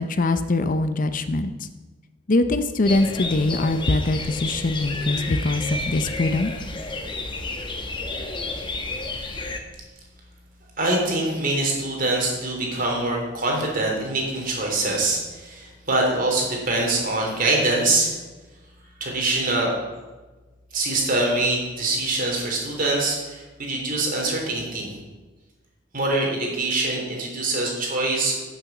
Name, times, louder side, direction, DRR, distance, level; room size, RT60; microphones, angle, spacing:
voice 1, 0.0-1.7 2.3-6.5, left 2 dB, 45° left, 10 dB, 0.6 m, -23 dB
sound 1, 2.9-9.6, left 2 dB, 25° left, 1.2 m, -31 dB
voice 2, 10.8-18.2 19.0-19.7 20.7-24.9 25.9-28.4, right 2 dB, 50° right, -1 dB, 3.4 m, -24 dB
14.0 x 6.9 x 6.0 m, 1.2 s
head